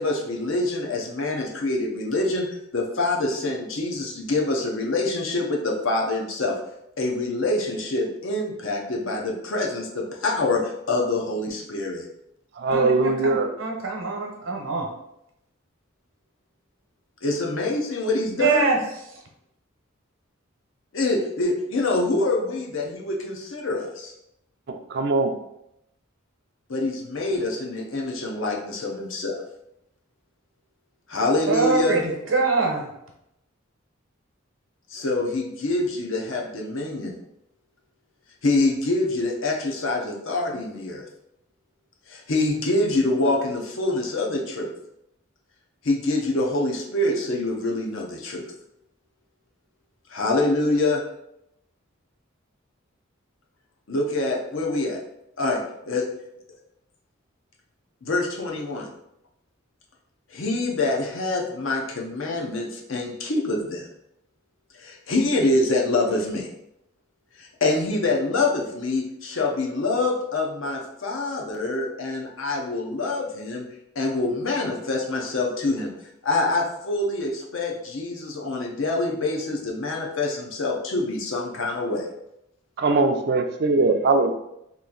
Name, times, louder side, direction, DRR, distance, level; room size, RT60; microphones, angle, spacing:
voice 1, 0.0-6.6 7.0-12.1 17.2-18.8 20.9-24.1 26.7-29.4 31.1-32.0 34.9-37.1 38.4-41.0 42.1-44.7 45.8-48.5 50.1-51.0 53.9-55.0 55.4-56.1 58.0-58.9 60.3-63.9 64.8-66.5 67.4-73.7 74.0-75.9 76.2-82.1, left 2 dB, 75° left, 0 dB, 0.7 m, -25 dB
voice 2, 12.6-13.5 24.7-25.3 82.8-84.3, right 3 dB, 55° right, 6 dB, 0.4 m, -21 dB
voice 3, 13.2-14.8 18.4-18.7 31.5-32.0 32.3-32.9, right 4 dB, 75° right, 0 dB, 0.9 m, -23 dB
3.0 x 2.5 x 3.8 m, 0.81 s
head